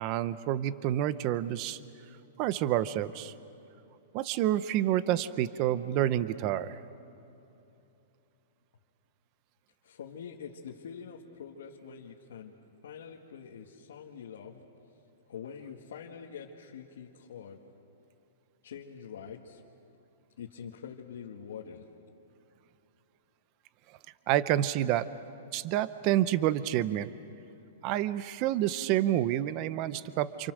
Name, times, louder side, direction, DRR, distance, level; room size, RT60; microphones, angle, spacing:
voice 1, 0.0-1.8 2.4-3.3 4.1-6.8 24.3-25.1 25.5-27.1 27.8-30.5, right 12 dB, 25° right, 15 dB, 0.6 m, -28 dB
voice 2, 9.8-12.5 12.8-14.6 15.3-17.6 18.6-19.6 20.4-21.9, left 7 dB, 65° left, -3 dB, 2.0 m, -45 dB
29.0 x 28.5 x 6.4 m, 2.9 s
hypercardioid pair, 180°, 0 cm